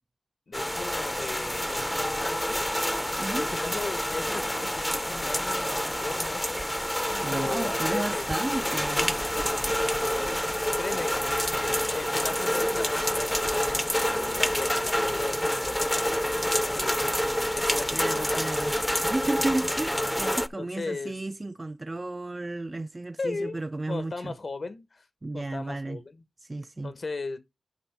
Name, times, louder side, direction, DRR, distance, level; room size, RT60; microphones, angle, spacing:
voice 1, 0.5-2.7 3.4-6.8 7.3-8.4 9.4-9.8 10.8-18.5 20.6-21.1 23.2-23.6 23.9-25.0 25.3-26.2 26.8-27.4, left 3 dB, 60° left, 1.1 m, -37 dB
sound 1, 0.5-20.5, equal, 10° left, 0.6 m, -28 dB
voice 2, 7.1-9.2 17.9-18.8 19.0-24.4 25.2-26.0 26.4-26.9, right 2 dB, 35° right, 0.4 m, -33 dB
11.0 x 5.1 x 3.4 m
cardioid pair, 50°, 0 cm